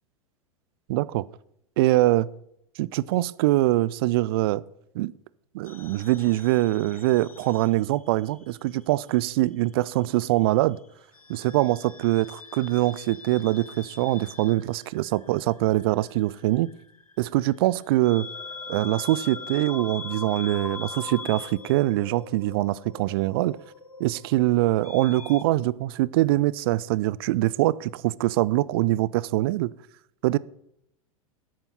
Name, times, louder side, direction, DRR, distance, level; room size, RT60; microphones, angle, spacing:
voice 1, 0.9-1.3 1.8-2.3 2.8-4.6 4.9-5.1 5.5-10.8 11.3-16.7 17.2-18.3 18.7-23.6 24.0-29.7 30.2-30.4, right 17 dB, 45° right, 0.4 m, -23 dB
sound 1, 5.7-8.5 8.8-9.9 11.1-25.4, left 4 dB, 85° left, 0.7 m, -42 dB
11.0 x 8.8 x 4.1 m
figure-of-eight pair, 90°, 18 cm